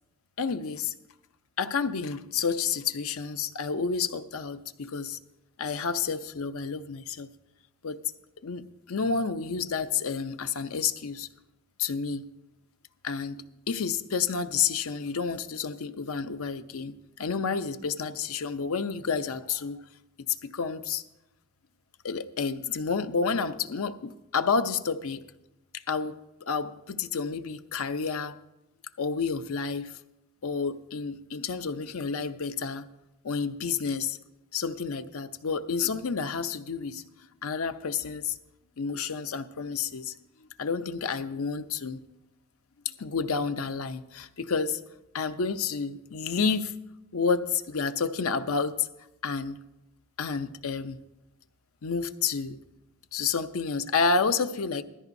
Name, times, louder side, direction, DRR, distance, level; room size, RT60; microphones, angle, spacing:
voice 1, 0.4-1.0 1.6-5.2 5.6-7.3 7.8-8.0 8.4-11.3 11.8-12.2 13.0-19.8 20.4-21.0 22.0-25.2 25.7-26.1 26.5-28.4 29.0-29.9 30.4-32.9 33.2-34.2 34.5-37.1 37.4-38.3 38.8-40.1 40.4-42.0 42.8-44.8 45.1-46.7 47.1-48.9 49.2-49.6 50.2-51.0 51.8-52.6 53.1-54.8, left 5 dB, 70° left, 10 dB, 0.6 m, -30 dB
16.5 x 13.5 x 2.6 m, 0.93 s
head